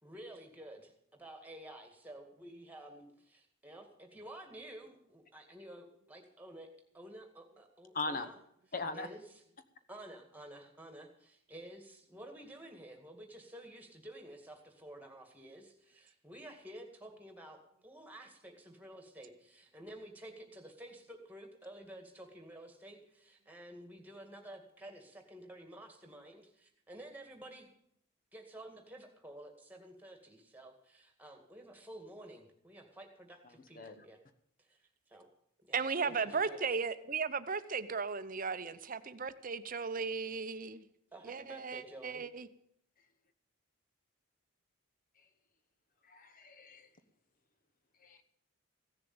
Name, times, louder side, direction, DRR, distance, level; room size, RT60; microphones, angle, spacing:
voice 1, 0.0-6.7 6.9-8.4 8.9-9.4 9.9-27.7 28.3-34.2 34.6-35.3 35.6-36.7 41.1-42.2, right 1 dB, 10° right, 4 dB, 2.0 m, -51 dB
voice 2, 7.9-8.3 8.7-9.1 33.8-34.0 46.1-46.9 48.0-48.2, left 3 dB, 40° left, 11 dB, 1.1 m, -39 dB
voice 3, 35.7-40.8 41.3-42.5, right 5 dB, 40° right, 12 dB, 0.7 m, -36 dB
15.5 x 7.0 x 8.7 m, 0.71 s
head